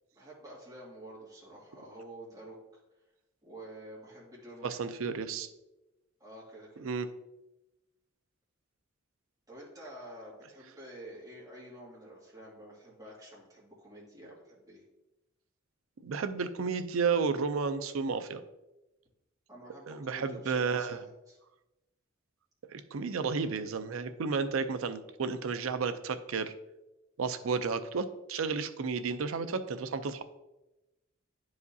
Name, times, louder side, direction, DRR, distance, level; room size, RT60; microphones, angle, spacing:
voice 1, 0.1-2.6 3.4-4.7 6.2-6.9 9.5-14.8 19.5-21.4, right 1 dB, 20° right, -6 dB, 2.2 m, -49 dB
voice 2, 4.6-5.5 6.8-7.1 16.0-18.4 19.9-21.0 22.7-26.5 27.2-30.2, right 5 dB, 70° right, 11 dB, 0.5 m, -32 dB
10.5 x 4.8 x 2.7 m, 0.99 s
head